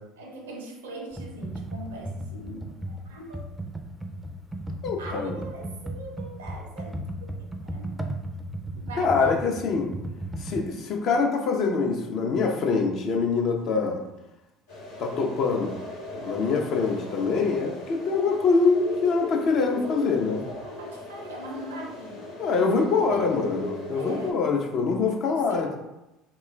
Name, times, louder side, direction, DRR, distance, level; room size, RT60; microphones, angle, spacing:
voice 1, 0.2-3.5 5.0-7.9 8.7-9.4 20.4-22.3 23.1-23.6 23.9-24.5 25.1-25.8, right 1 dB, 80° right, 2 dB, 0.5 m, -41 dB
Computer keyboard, 1.1-10.6, right 1 dB, 10° right, 0.4 m, -35 dB
voice 2, 4.8-5.4 9.0-9.9 10.4-14.0 15.0-15.8 16.2-20.4 22.4-25.8, left 4 dB, 55° left, 1 dB, 0.6 m, -24 dB
sound 1, 14.7-24.3, left 1 dB, 85° left, 1.1 m, -38 dB
3.0 x 2.3 x 3.1 m, 0.95 s
hypercardioid pair, 60°, 0 cm